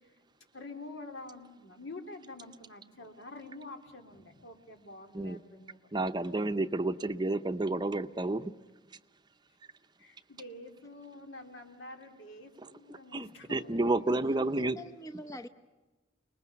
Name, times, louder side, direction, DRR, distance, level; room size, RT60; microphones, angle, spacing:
voice 1, 0.5-5.9 10.0-13.8, left 2 dB, 80° left, 3 dB, 3.4 m, -47 dB
voice 2, 5.9-8.5 12.9-14.8, right 2 dB, 25° right, 9 dB, 0.7 m, -30 dB
voice 3, 14.2-15.5, equal, 20° left, 8 dB, 0.8 m, -45 dB
30.0 x 20.5 x 7.0 m, 1.2 s
head